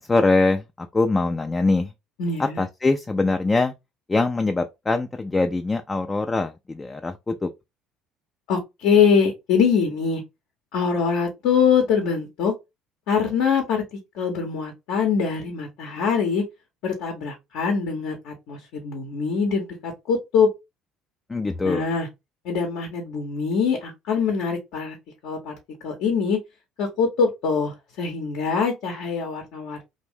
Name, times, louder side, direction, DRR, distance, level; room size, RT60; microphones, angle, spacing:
voice 1, 0.0-1.9 2.4-3.7 4.1-7.5 21.3-21.9, left 3 dB, 20° left, 0.3 m, -23 dB
voice 2, 2.2-2.6 8.5-10.2 10.7-12.5 13.1-13.8 14.2-16.4 16.8-20.5 21.6-22.1 22.4-25.0 25.2-25.5 25.8-26.4 26.8-29.9, left 6 dB, 65° left, 0.7 m, -23 dB
2.5 x 2.0 x 3.4 m
hypercardioid pair, 60°, 0 cm